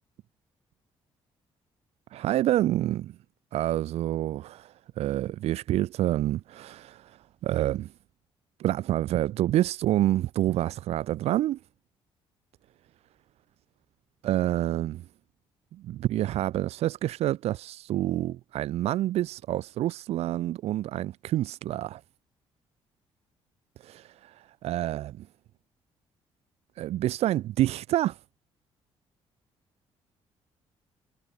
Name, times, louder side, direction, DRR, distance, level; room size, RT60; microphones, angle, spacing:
voice 1, 2.1-3.2 3.5-7.1 7.4-7.9 8.6-11.6 14.2-15.0 15.7-22.0 23.8-24.3 24.6-25.3 26.8-28.2, right 14 dB, 80° right, 5.6 m, -28 dB
cardioid pair, 170°, 11 cm